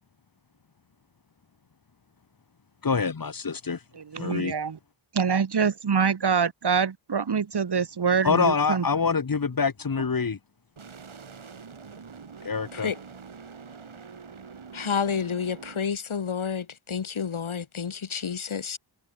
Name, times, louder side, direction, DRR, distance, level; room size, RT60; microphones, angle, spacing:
voice 1, 2.8-3.8 4.2-4.5 8.2-10.4 12.4-12.9, left 5 dB, 45° left, 1.3 m, -25 dB
voice 2, 3.9-4.8 5.1-8.9, right 6 dB, 55° right, 1.2 m, -25 dB
sound 1, 10.8-15.8, right 5 dB, 80° right, 3.0 m, -45 dB
voice 3, 14.7-18.8, left 6 dB, 85° left, 1.8 m, -30 dB
wide cardioid pair, 55°, 48 cm